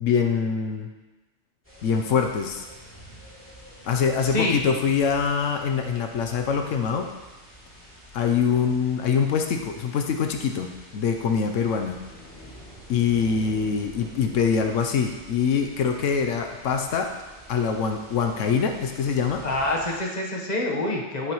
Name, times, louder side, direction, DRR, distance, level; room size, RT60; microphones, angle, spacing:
voice 1, 0.0-0.9 1.8-2.6 3.8-7.1 8.1-12.0 12.9-17.1 17.5-19.4, left 6 dB, 85° left, 5 dB, 1.1 m, -24 dB
sound 1, 1.6-20.0, equal, 10° left, 2.9 m, -47 dB
voice 2, 4.2-4.6 19.4-21.3, left 2 dB, 35° left, -1 dB, 1.3 m, -26 dB
10.5 x 9.4 x 3.1 m, 1.2 s
omnidirectional pair, 1.3 m